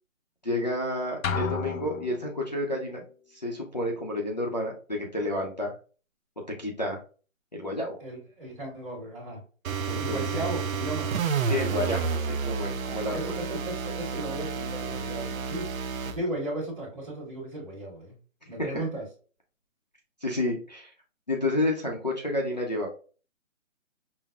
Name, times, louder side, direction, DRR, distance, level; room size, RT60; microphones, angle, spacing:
voice 1, 0.4-3.0 3.3-5.7 6.6-7.0 7.5-8.0 9.9-10.5 11.5-13.3 18.6-18.8 20.2-20.9 21.3-22.9, left 1 dB, 35° left, -2 dB, 0.5 m, -30 dB
sound 1, 1.2-2.7, left 5 dB, 80° left, 0.6 m, -32 dB
voice 2, 8.0-9.4 10.0-11.1 12.8-15.7 16.0-18.1 18.5-19.0, right 1 dB, 25° right, -8 dB, 1.4 m, -36 dB
sound 2, 9.6-16.2, right 5 dB, 90° right, 0.6 m, -30 dB
5.7 x 2.0 x 2.2 m, 0.37 s
hypercardioid pair, 175°, 40 cm